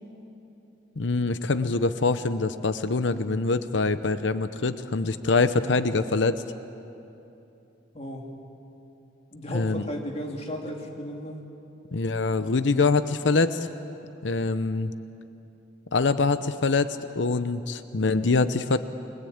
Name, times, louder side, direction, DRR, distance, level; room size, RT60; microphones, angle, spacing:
voice 1, 1.0-6.4 9.5-9.8 11.9-13.7 14.2-14.9 15.9-18.8, left 3 dB, 75° left, 12 dB, 0.8 m, -24 dB
voice 2, 7.9-8.3 9.3-11.4, equal, 35° left, 1 dB, 3.1 m, -35 dB
29.5 x 21.5 x 8.8 m, 2.9 s
head